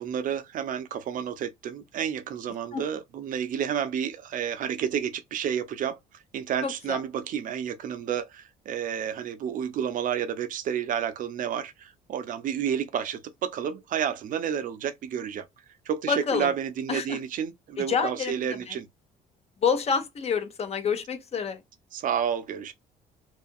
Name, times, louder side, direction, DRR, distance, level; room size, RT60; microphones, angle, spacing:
voice 1, 0.0-6.0 6.3-15.4 15.9-18.9 21.9-22.7, right 8 dB, 55° right, 0.5 m, -30 dB
voice 2, 6.6-7.0 16.1-16.5 16.9-17.2 17.8-18.4 18.7-18.8 19.6-21.6, left 6 dB, 40° left, 0.6 m, -27 dB
2.7 x 2.4 x 2.6 m
cardioid pair, 110°, 17 cm